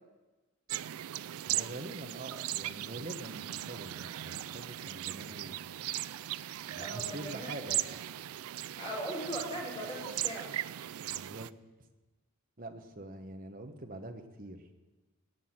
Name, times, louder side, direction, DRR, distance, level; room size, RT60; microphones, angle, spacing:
sound 1, 0.7-11.5, right 13 dB, 75° right, 0.4 m, -38 dB
voice 1, 1.5-5.6 6.7-7.8 11.0-11.5 12.6-14.7, right 1 dB, 40° right, 6 dB, 1.1 m, -44 dB
voice 2, 6.7-8.0 8.8-10.5, equal, 25° left, -5 dB, 3.6 m, -40 dB
17.5 x 6.2 x 8.9 m, 1.2 s
head